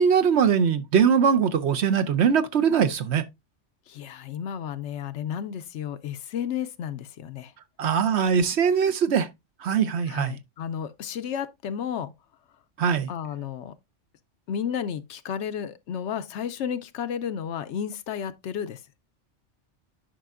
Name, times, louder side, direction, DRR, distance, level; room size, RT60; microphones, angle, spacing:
voice 1, 0.0-3.2 7.8-9.3 9.6-10.4 12.8-13.1, right 7 dB, 65° right, 1.0 m, -21 dB
voice 2, 3.9-7.5 10.1-12.1 13.1-13.7 14.5-18.8, left 8 dB, 70° left, 0.9 m, -32 dB
10.0 x 5.4 x 2.4 m
omnidirectional pair, 1.3 m